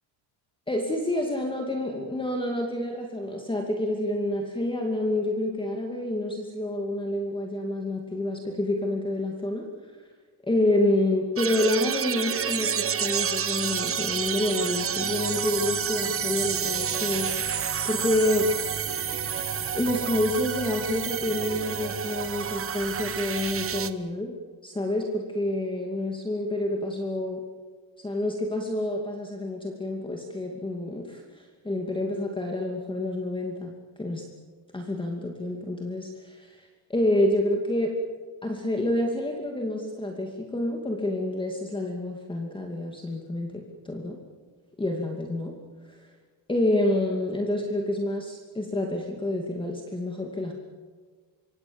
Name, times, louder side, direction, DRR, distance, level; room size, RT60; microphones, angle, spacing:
voice 1, 0.7-9.7 10.4-18.5 19.7-24.3 24.6-27.4 28.0-33.7 34.0-34.3 34.7-37.9 38.4-44.2 44.8-45.6 45.9-46.1 46.5-50.5, left 1 dB, 10° left, 2 dB, 2.6 m, -28 dB
sound 1, 11.4-23.9, right 8 dB, 25° right, 1.2 m, -29 dB
25.5 x 25.0 x 7.2 m, 1.5 s
cardioid pair, 150°, 48 cm